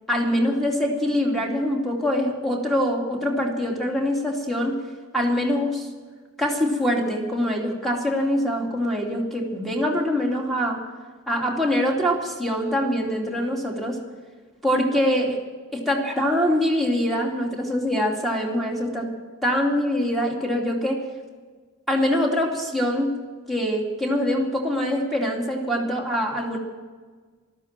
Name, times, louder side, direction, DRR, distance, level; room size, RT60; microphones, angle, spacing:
voice 1, 0.1-4.8 5.1-5.9 6.4-10.8 11.3-14.0 14.6-15.4 15.7-19.1 19.4-21.0 21.9-23.1 23.5-26.6, equal, ahead, -1 dB, 2.6 m, -24 dB
13.5 x 13.0 x 7.4 m, 1.4 s
head